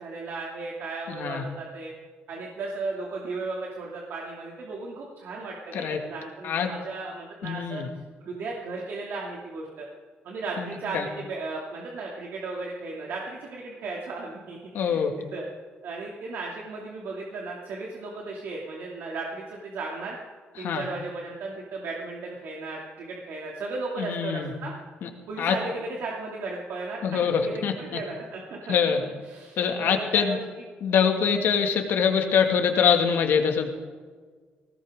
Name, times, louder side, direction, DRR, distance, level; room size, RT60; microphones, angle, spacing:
voice 1, 0.0-1.9 2.3-7.8 8.2-9.9 10.2-15.0 15.3-15.5 15.8-20.2 20.6-24.7 25.3-27.0 27.3-28.7 29.3-30.6, right 3 dB, 65° right, -2 dB, 2.6 m, -35 dB
voice 2, 1.1-1.4 5.7-6.0 6.4-6.7 7.4-7.9 10.6-11.1 14.7-15.1 20.6-20.8 24.0-24.5 25.0-25.1 25.4-25.6 27.0-28.0 28.7-29.0 29.6-30.4 30.8-33.7, left 7 dB, 65° left, 4 dB, 2.1 m, -24 dB
20.5 x 17.5 x 3.7 m, 1.5 s
cardioid pair, 160°, 4 cm